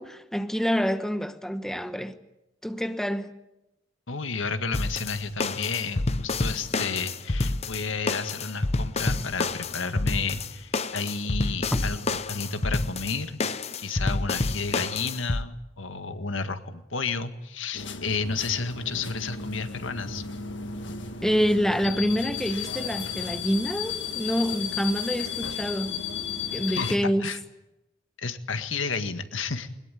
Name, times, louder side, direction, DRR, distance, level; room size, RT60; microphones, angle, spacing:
voice 1, 0.0-2.2 2.6-3.3 11.7-11.8 21.2-25.9 26.5-27.3, equal, ahead, 1.0 m, -27 dB
voice 2, 4.1-13.4 13.8-20.2 26.8-26.9 27.2-27.4 28.2-29.7, left 4 dB, 85° left, 1.8 m, -31 dB
sound 1, 4.7-15.4, left 3 dB, 35° left, 0.8 m, -28 dB
sound 2, 17.7-27.0, left 6 dB, 65° left, 1.7 m, -34 dB
22.0 x 20.0 x 9.3 m
head